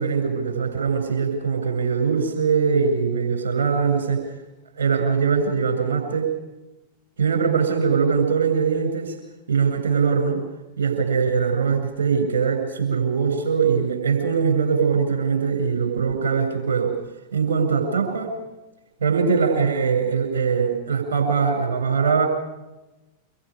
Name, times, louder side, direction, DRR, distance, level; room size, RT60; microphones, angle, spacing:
voice 1, 0.0-4.3 4.8-6.3 7.2-9.2 9.5-10.4 10.8-17.0 17.3-18.4 19.0-22.3, right 5 dB, 65° right, 5 dB, 7.4 m, -22 dB
26.0 x 25.5 x 5.3 m, 1.0 s
figure-of-eight pair, 90°, 0 cm